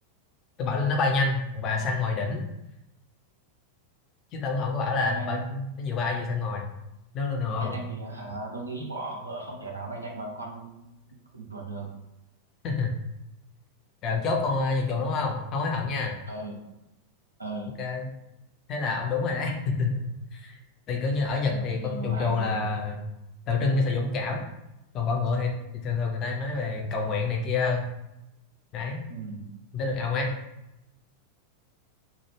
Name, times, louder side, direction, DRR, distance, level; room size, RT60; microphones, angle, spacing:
voice 1, 0.6-2.4 4.3-6.7 7.1-7.8 12.6-12.9 14.0-16.2 17.8-18.1 18.7-20.6 20.9-23.0 23.5-24.4 24.9-27.9 28.7-29.0 29.7-30.3, left 4 dB, 35° left, 1 dB, 0.4 m, -27 dB
voice 2, 5.0-5.4 7.6-10.8 11.3-11.9 16.3-16.6 17.4-17.8 21.5-22.6 29.1-29.5, right 2 dB, 80° right, -1 dB, 0.4 m, -37 dB
2.1 x 2.0 x 3.0 m, 0.90 s
figure-of-eight pair, 90°, 0 cm